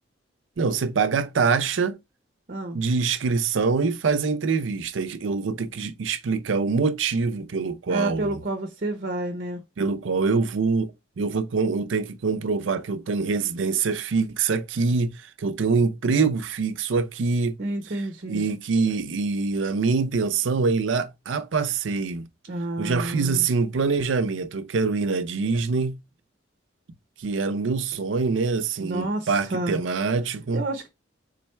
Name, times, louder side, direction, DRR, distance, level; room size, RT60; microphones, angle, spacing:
voice 1, 0.6-2.0 2.7-8.4 9.8-10.9 11.2-17.5 18.3-22.3 22.8-26.0 27.2-30.6, right 4 dB, 85° right, 0.5 m, -24 dB
voice 2, 2.5-2.8 7.9-9.6 17.6-18.4 22.5-23.5 28.8-29.8 30.5-30.9, right 1 dB, 50° right, 0.7 m, -30 dB
3.8 x 3.2 x 4.3 m
head